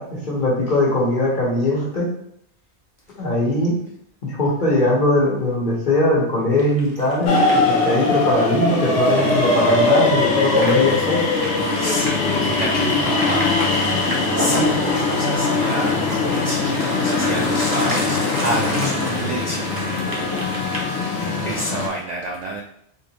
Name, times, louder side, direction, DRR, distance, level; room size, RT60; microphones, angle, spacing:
voice 1, 0.0-2.1 3.2-3.8 4.2-11.2, left 1 dB, 45° left, -4 dB, 1.2 m, -20 dB
sound 1, 6.6-22.0, equal, 20° right, 0.7 m, -32 dB
sound 2, 7.3-21.9, left 3 dB, 85° left, 1.0 m, -21 dB
voice 2, 11.5-13.8 14.3-16.0 16.3-19.7 21.4-22.6, right 2 dB, 60° right, -1 dB, 0.4 m, -28 dB
3.6 x 2.5 x 2.9 m, 0.72 s
omnidirectional pair, 1.1 m